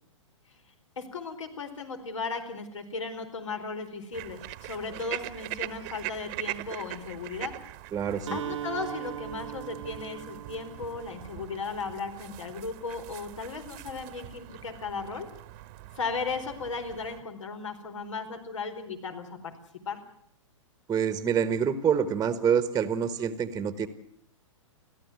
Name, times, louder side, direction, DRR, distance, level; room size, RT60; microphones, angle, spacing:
voice 1, 1.0-7.5 8.3-15.3 15.9-19.5 19.9-20.0, left 4 dB, 70° left, 7 dB, 4.6 m, -36 dB
sound 1, 4.1-17.2, right 18 dB, 40° right, 1.4 m, -42 dB
voice 2, 7.9-8.4 20.9-23.9, right 7 dB, 15° right, 11 dB, 1.4 m, -26 dB
Acoustic guitar, 8.3-12.1, right 11 dB, 70° right, 1.4 m, -39 dB
30.0 x 13.5 x 9.4 m, 0.68 s
figure-of-eight pair, 115°, 16 cm